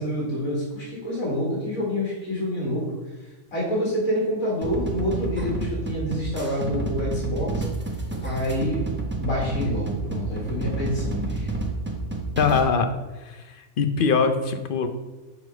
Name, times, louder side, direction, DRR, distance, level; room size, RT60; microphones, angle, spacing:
voice 1, 0.0-2.8 3.5-7.7 8.2-8.8 9.2-11.5, equal, 90° left, -5 dB, 2.7 m, -27 dB
sound 1, 4.6-12.6, right 2 dB, 10° right, 0.7 m, -30 dB
voice 2, 12.4-12.9 13.8-14.9, left 5 dB, 55° left, 7 dB, 0.7 m, -21 dB
6.5 x 4.5 x 4.6 m, 1.2 s
omnidirectional pair, 1.4 m